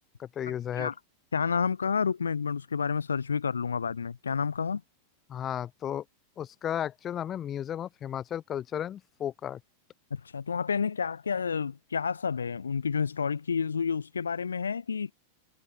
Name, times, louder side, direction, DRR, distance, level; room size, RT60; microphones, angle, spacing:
voice 1, 0.2-0.9 5.3-6.0 6.4-9.6, left 10 dB, 25° left, 5.9 m, -34 dB
voice 2, 1.3-4.8 10.1-15.1, left 6 dB, 70° left, 4.2 m, -30 dB
figure-of-eight pair, 90°, 0 cm